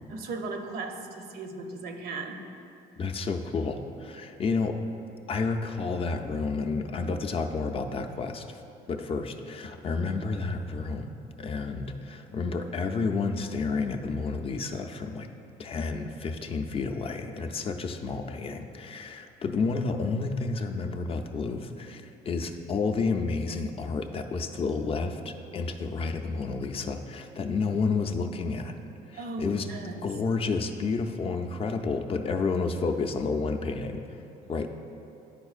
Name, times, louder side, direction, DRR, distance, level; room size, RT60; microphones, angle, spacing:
voice 1, 0.1-2.4 29.1-30.1, right 3 dB, 70° right, 5 dB, 0.6 m, -36 dB
voice 2, 3.0-4.8 5.3-8.6 8.9-11.1 11.4-15.3 15.6-28.8 29.1-29.7 30.0-34.2 34.5-34.7, left 4 dB, 35° left, 5 dB, 0.4 m, -30 dB
10.5 x 4.3 x 2.4 m, 2.6 s
cardioid pair, 110°, 17 cm